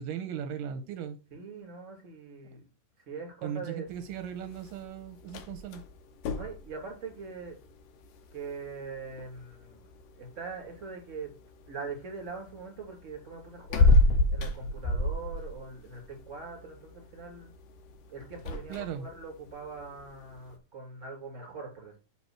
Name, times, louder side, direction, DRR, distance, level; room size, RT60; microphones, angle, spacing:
voice 1, 0.0-1.2 3.4-5.8 18.7-19.1, right 8 dB, 85° right, 2.2 m, -37 dB
voice 2, 1.3-2.6 3.0-3.8 6.3-7.6 8.3-9.8 10.2-11.3 11.7-17.5 18.1-22.0, right 4 dB, 25° right, 2.6 m, -42 dB
sound 1, 3.9-20.6, left 2 dB, 80° left, 2.6 m, -32 dB
6.9 x 4.2 x 6.0 m
omnidirectional pair, 4.0 m